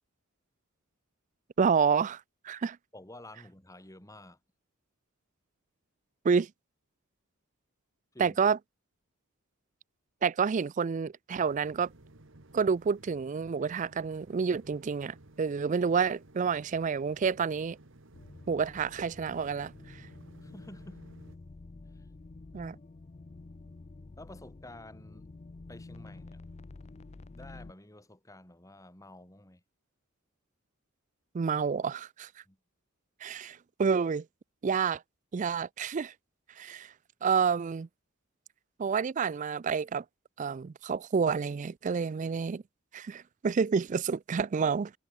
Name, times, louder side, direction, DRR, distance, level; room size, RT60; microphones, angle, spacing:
voice 1, 1.6-2.8 6.2-6.5 8.2-8.6 10.2-11.9 12.5-17.8 18.5-20.0 22.5-22.8 31.3-32.3 33.2-34.3 34.6-35.0 35.3-36.1 36.6-36.9 37.2-37.9 38.8-40.0 40.4-42.6 42.9-44.9, right 6 dB, 35° right, 0.3 m, -29 dB
voice 2, 2.9-4.4 8.1-8.4 20.4-21.1 21.9-22.1 24.2-25.3 25.7-26.4 27.3-29.6 32.5-32.6, left 1 dB, 15° left, 2.8 m, -50 dB
sound 1, 11.3-21.4, right 2 dB, 60° right, 1.8 m, -56 dB
sound 2, 18.1-27.7, left 3 dB, 30° left, 0.4 m, -49 dB
head